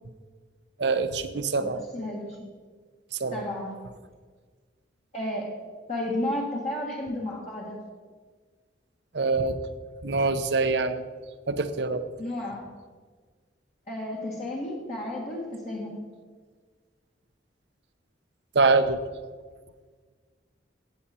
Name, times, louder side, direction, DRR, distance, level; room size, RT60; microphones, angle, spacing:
voice 1, 0.8-1.8 3.1-3.4 9.1-9.6 10.0-11.0 11.5-12.1 18.5-19.0, right 3 dB, 65° right, 11 dB, 0.7 m, -24 dB
voice 2, 1.6-2.5 3.3-3.7 5.1-5.5 5.9-7.8 12.2-12.6 13.9-16.0, left 1 dB, 35° left, -3 dB, 1.6 m, -32 dB
15.0 x 8.7 x 4.3 m, 1.5 s
head